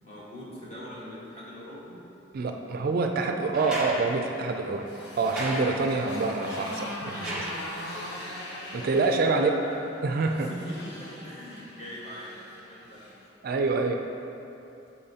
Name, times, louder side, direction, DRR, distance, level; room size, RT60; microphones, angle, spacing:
voice 1, 0.0-2.0 7.2-8.4 9.2-9.8 10.3-13.0, equal, 35° left, -8 dB, 1.5 m, -42 dB
voice 2, 2.3-4.9 5.2-7.5 8.7-9.5 10.0-10.5 13.4-14.0, right 3 dB, 50° right, 4 dB, 0.3 m, -26 dB
sound 1, 3.5-8.2 9.7-9.8, equal, 5° right, 0.9 m, -37 dB
Motorcycle, 3.8-13.2, left 1 dB, 60° left, 1.1 m, -41 dB
8.6 x 4.3 x 2.8 m, 2.9 s
head